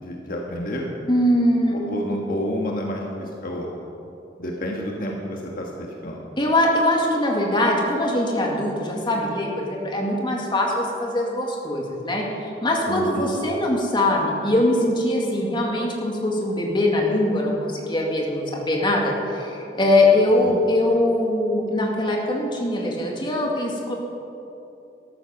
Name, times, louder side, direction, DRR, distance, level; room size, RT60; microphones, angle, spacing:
voice 1, 0.0-0.9 1.7-3.7 4.4-6.3 12.9-13.2 20.4-20.6, equal, 55° left, -1 dB, 1.5 m, -29 dB
voice 2, 1.1-1.8 6.4-23.9, left 1 dB, 25° left, -1 dB, 2.1 m, -22 dB
13.0 x 13.0 x 5.9 m, 2.8 s
head